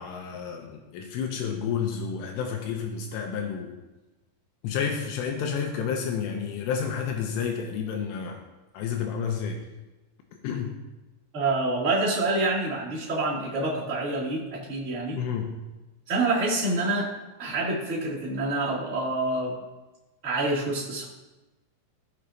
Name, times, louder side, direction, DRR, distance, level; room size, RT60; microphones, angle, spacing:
voice 1, 0.0-3.7 4.6-8.4 8.7-9.6 10.4-10.8 15.2-15.6, left 7 dB, 85° left, 2 dB, 3.3 m, -30 dB
voice 2, 11.3-15.2 16.1-17.1 17.4-19.5 20.2-21.1, right 2 dB, 20° right, -8 dB, 2.4 m, -27 dB
18.5 x 6.4 x 2.9 m, 1.1 s
omnidirectional pair, 5.8 m